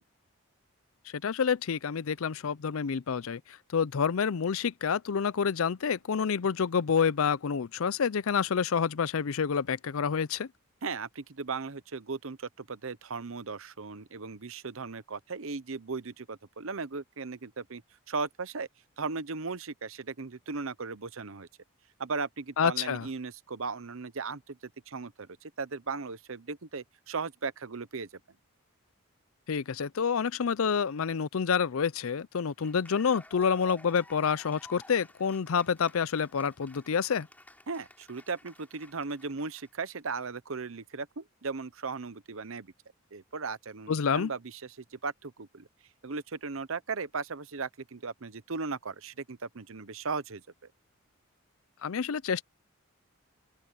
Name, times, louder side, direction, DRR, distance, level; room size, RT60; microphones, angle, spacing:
voice 1, 1.1-10.5 22.6-23.1 29.5-37.3 43.9-44.3 51.8-52.4, left 6 dB, 70° left, 0.5 m, -28 dB
voice 2, 10.8-17.8 18.1-18.7 19.0-21.5 22.0-28.1 37.7-42.7 43.1-45.7 46.0-50.4, right 4 dB, 65° right, 0.9 m, -37 dB
Cheering / Applause, 32.3-39.9, left 1 dB, 5° left, 4.9 m, -54 dB
open air
head